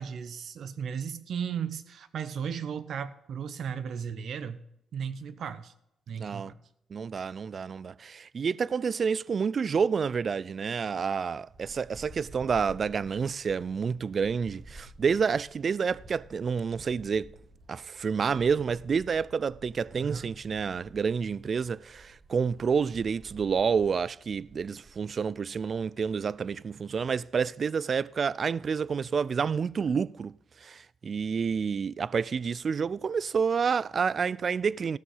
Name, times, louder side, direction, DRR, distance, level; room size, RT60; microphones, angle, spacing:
voice 1, 0.0-4.6 4.9-5.7 6.1-6.6 20.0-20.3, right 7 dB, 70° right, 0.8 m, -35 dB
voice 2, 6.1-6.5 6.9-17.3 17.7-30.3 30.6-35.0, right 6 dB, 50° right, 0.3 m, -29 dB
sound 1, 11.5-26.6, right 2 dB, 30° right, 1.7 m, -52 dB
14.5 x 6.4 x 5.5 m
cardioid pair, 70°, 0 cm